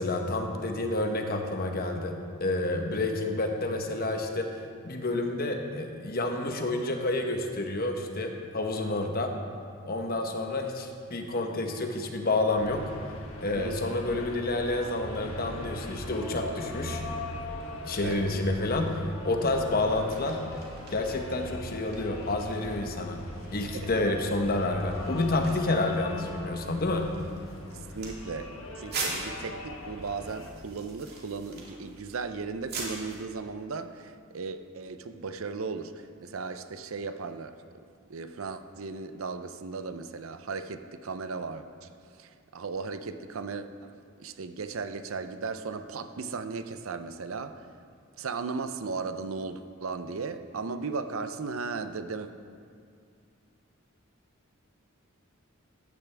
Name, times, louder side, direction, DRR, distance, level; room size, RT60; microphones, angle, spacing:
voice 1, 0.0-2.1 2.4-4.5 4.8-9.3 9.8-12.8 13.4-17.0 17.8-20.4 20.9-23.2 23.5-27.1, left 2 dB, 45° left, 4 dB, 1.0 m, -29 dB
sound 1, 12.5-30.5, left 1 dB, 80° left, 1.3 m, -40 dB
sound 2, 19.9-33.2, right 3 dB, 50° right, 2.4 m, -43 dB
voice 2, 23.7-24.1 27.7-28.5 28.8-37.6 38.1-41.9 42.2-43.9 44.2-47.7 48.2-52.3, right 4 dB, 75° right, 10 dB, 0.6 m, -36 dB
14.5 x 10.5 x 3.4 m, 2.2 s
head